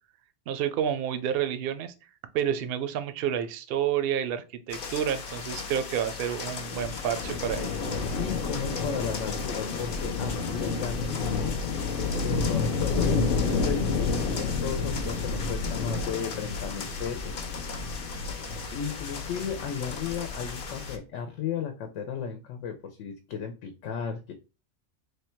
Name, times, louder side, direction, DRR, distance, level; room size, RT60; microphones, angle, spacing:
voice 1, 0.5-1.9 2.3-7.7, right 9 dB, 60° right, 10 dB, 0.7 m, -29 dB
sound 1, 4.7-21.0, left 4 dB, 55° left, 0.7 m, -30 dB
voice 2, 8.2-11.6 12.2-17.4 18.7-24.3, left 7 dB, 85° left, 6 dB, 0.9 m, -35 dB
3.3 x 2.2 x 4.3 m, 0.31 s
omnidirectional pair, 1.2 m